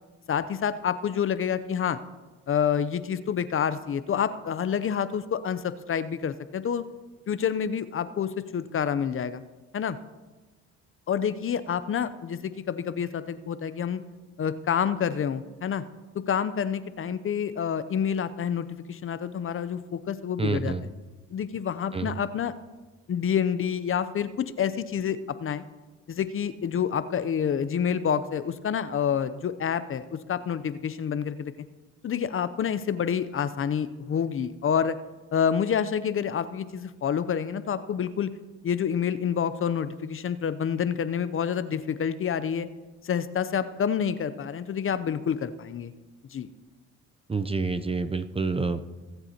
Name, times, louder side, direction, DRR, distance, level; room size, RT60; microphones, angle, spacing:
voice 1, 0.3-2.0 2.5-6.9 7.3-9.4 9.7-10.0 11.1-14.0 14.4-15.8 16.1-20.7 21.3-22.5 23.1-25.6 26.1-31.5 32.0-35.0 35.3-38.3 38.6-42.7 43.0-45.9 46.3-46.5, left 8 dB, 45° left, 13 dB, 0.6 m, -28 dB
voice 2, 20.4-20.9 21.9-22.2 47.3-48.9, right 4 dB, 20° right, 10 dB, 0.6 m, -28 dB
21.5 x 8.0 x 2.9 m, 1.2 s
cardioid pair, 75°, 31 cm